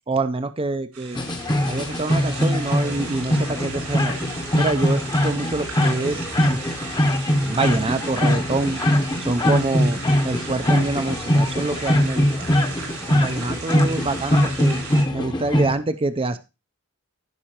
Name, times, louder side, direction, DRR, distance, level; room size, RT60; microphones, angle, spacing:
voice 1, 0.1-1.2 1.6-4.2 4.5-6.6 7.4-8.8 9.2-10.0 10.2-12.3 13.1-14.8 15.1-16.4, right 2 dB, 25° right, 11 dB, 0.5 m, -26 dB
sound 1, 0.9-15.0, right 4 dB, 85° right, 4.2 m, -36 dB
sound 2, 1.1-15.7, left 1 dB, 20° left, 0.9 m, -22 dB
14.5 x 5.5 x 2.9 m, 0.27 s
head